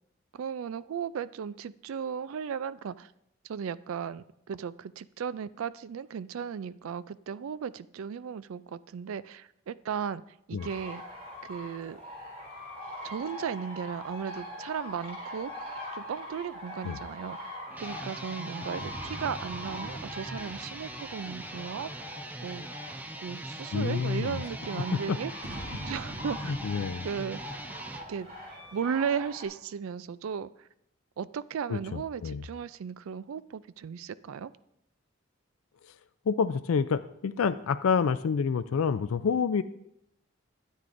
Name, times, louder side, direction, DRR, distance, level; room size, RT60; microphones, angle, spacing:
voice 1, 0.3-3.1 3.4-10.2 10.5-11.0 11.4-12.0 13.0-15.5 15.9-21.9 22.4-22.7 23.2-25.3 25.9-26.6 27.0-27.4 28.1-28.3 28.7-30.5 31.2-34.5, right 7 dB, 80° right, 16 dB, 0.3 m, -36 dB
sound 1, 10.6-29.5, left 1 dB, 35° right, 3.2 m, -43 dB
sound 2, 17.7-28.1, right 1 dB, 10° right, 0.4 m, -41 dB
sound 3, 18.8-22.5 25.4-29.2, right 1 dB, 50° right, 1.1 m, -46 dB
voice 2, 23.7-24.4 25.1-25.2 26.5-27.1 31.7-32.4 36.3-39.6, left 6 dB, 85° left, 12 dB, 0.4 m, -28 dB
13.0 x 9.2 x 2.6 m, 0.80 s
head